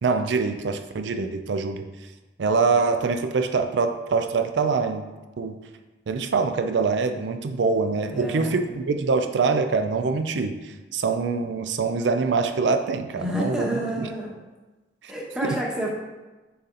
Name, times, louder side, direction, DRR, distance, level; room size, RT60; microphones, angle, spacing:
voice 1, 0.0-1.9 2.4-5.6 6.1-14.1 15.0-15.1 15.4-15.6, right 4 dB, 90° right, 7 dB, 0.4 m, -24 dB
voice 2, 8.1-8.6 13.1-14.4 15.1-15.9, equal, 5° right, -3 dB, 1.0 m, -29 dB
6.8 x 4.2 x 3.8 m, 1.2 s
head